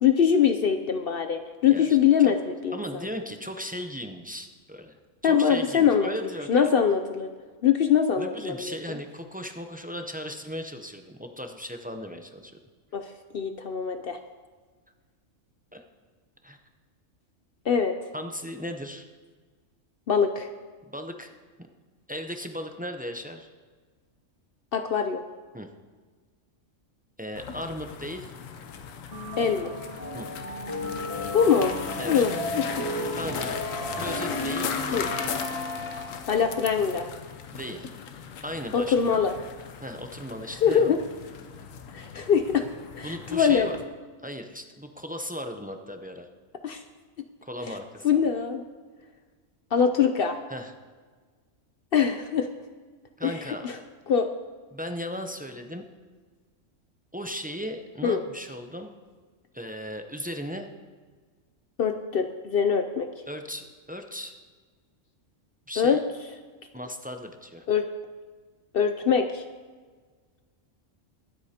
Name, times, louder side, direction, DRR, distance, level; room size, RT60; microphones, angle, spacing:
voice 1, 0.0-2.8 5.2-6.1 6.5-7.3 7.6-9.0 12.9-13.0 13.3-14.2 17.7-17.9 20.1-20.5 24.7-25.2 29.4-29.7 31.3-31.7 32.1-32.8 34.9-35.1 36.3-37.1 38.7-39.3 40.6-41.0 41.9-42.7 42.9-43.7 46.6-46.8 48.0-48.6 49.7-50.4 51.9-52.5 53.2-53.3 53.6-53.8 54.1-54.3 58.0-58.2 61.8-63.1 65.8-66.0 67.7-67.9 68.7-69.4, left 7 dB, 60° left, 7 dB, 0.7 m, -23 dB
voice 2, 2.7-6.7 8.2-12.6 15.7-15.8 16.4-16.6 18.1-19.1 20.9-21.3 22.1-23.5 25.5-25.7 27.2-28.3 30.1-30.3 32.0-32.3 33.1-33.6 34.0-35.0 37.5-37.9 38.4-39.2 39.8-41.0 43.0-43.8 44.2-46.3 47.4-48.2 50.5-50.7 53.2-53.8 54.7-55.8 57.1-58.9 59.5-60.7 63.3-64.4 65.7-66.0 66.7-67.7, equal, 15° right, 5 dB, 0.4 m, -37 dB
sound 1, 27.4-43.9, left 6 dB, 90° left, 1.2 m, -38 dB
sound 2, 29.1-36.4, left 1 dB, 40° left, 3.2 m, -34 dB
23.0 x 8.2 x 2.9 m, 1.5 s
omnidirectional pair, 1.3 m